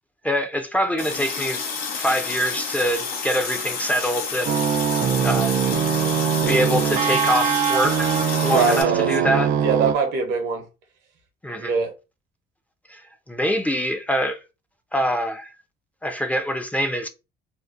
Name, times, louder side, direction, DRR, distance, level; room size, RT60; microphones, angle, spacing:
voice 1, 0.2-1.6 1.9-4.6 5.2-5.5 6.5-8.1 8.4-9.5 11.4-11.8 12.9-13.0 13.3-14.4 14.9-15.5 16.0-17.1, equal, 10° left, 0.4 m, -24 dB
Water tap faucet, 1.0-8.8, left 5 dB, 60° left, 0.7 m, -30 dB
sound 1, 4.5-9.9, right 8 dB, 55° right, 0.4 m, -22 dB
voice 2, 8.5-9.1 9.6-10.6 11.5-11.9, right 5 dB, 85° right, 0.8 m, -22 dB
2.6 x 2.0 x 2.4 m
cardioid pair, 110°, 17 cm